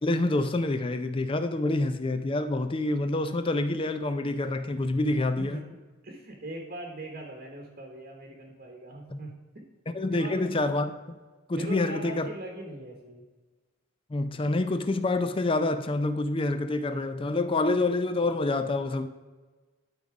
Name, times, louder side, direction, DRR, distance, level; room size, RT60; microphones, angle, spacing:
voice 1, 0.0-5.6 9.1-9.2 9.9-11.2 11.5-12.3 14.1-19.1, left 2 dB, 25° left, 0.4 m, -27 dB
voice 2, 5.4-5.8 6.0-9.6 10.1-10.5 11.6-13.2, right 1 dB, 40° right, 1.1 m, -41 dB
12.0 x 4.0 x 4.8 m
head